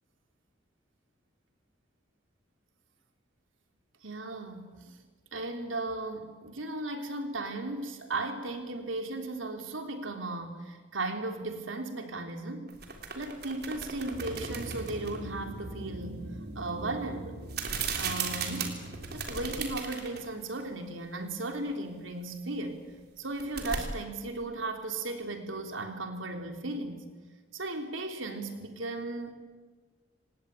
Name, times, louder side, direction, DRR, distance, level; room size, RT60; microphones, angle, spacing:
voice 1, 4.0-5.0 5.3-12.7 13.1-16.2 16.6-17.4 18.0-18.8 19.1-22.8 23.2-27.0 27.5-29.3, right 2 dB, 90° right, 5 dB, 3.4 m, -36 dB
sound 1, 12.7-15.2 17.5-20.3 20.6-20.7 23.2-23.8, right 6 dB, 55° right, 3.5 m, -36 dB
sound 2, 14.1-19.2, right 1 dB, 75° right, 3.1 m, -42 dB
26.5 x 18.5 x 9.1 m, 1.4 s
head